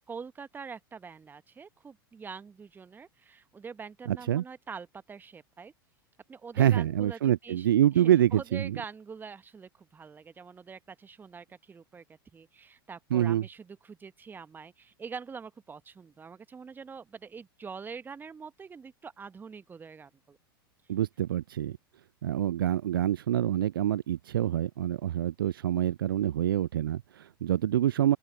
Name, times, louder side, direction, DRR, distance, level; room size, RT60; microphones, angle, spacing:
voice 1, 0.1-5.7 6.3-7.7 7.9-20.4, right 5 dB, 15° right, 1.2 m, -44 dB
voice 2, 4.1-4.4 6.6-8.8 13.1-13.4 20.9-21.8 22.2-28.2, right 11 dB, 65° right, 0.4 m, -26 dB
open air
figure-of-eight pair, 85°, 12 cm